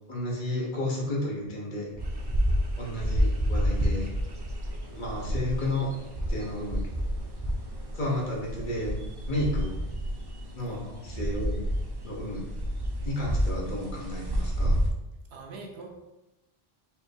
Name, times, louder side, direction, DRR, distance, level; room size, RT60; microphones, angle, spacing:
voice 1, 0.1-1.9 2.8-4.1 4.9-5.9 6.3-6.8 7.9-9.0 9.3-9.7 10.5-11.6 12.0-12.4 13.0-14.8, left 1 dB, 50° left, -3 dB, 1.0 m, -32 dB
sound 1, 1.9-10.5, equal, 30° left, 1.6 m, -48 dB
sound 2, 2.0-14.9, equal, 40° right, 0.3 m, -30 dB
voice 2, 10.6-11.1 15.3-15.9, right 3 dB, 85° right, 1 dB, 1.0 m, -44 dB
4.3 x 2.6 x 3.4 m, 0.98 s
omnidirectional pair, 1.1 m